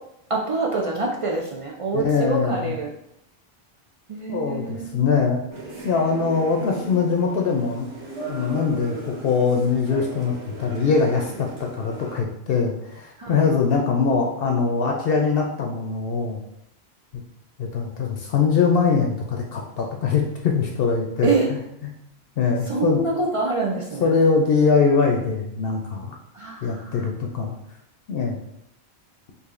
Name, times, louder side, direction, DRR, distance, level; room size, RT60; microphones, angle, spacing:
voice 1, 0.3-2.9 4.1-4.9 13.2-13.5 21.2-21.5 22.7-24.1 26.3-27.1, right 3 dB, 50° right, -2 dB, 0.4 m, -25 dB
voice 2, 1.9-2.7 4.3-5.4 5.8-7.9 8.3-10.3 10.6-16.4 17.6-21.3 22.4-23.0 24.0-26.2 26.6-27.5 28.1-28.4, left 5 dB, 65° left, 1 dB, 0.7 m, -22 dB
sound 1, 5.5-12.2, right 3 dB, 30° right, 0.8 m, -38 dB
4.8 x 2.6 x 2.5 m, 0.78 s
omnidirectional pair, 1.1 m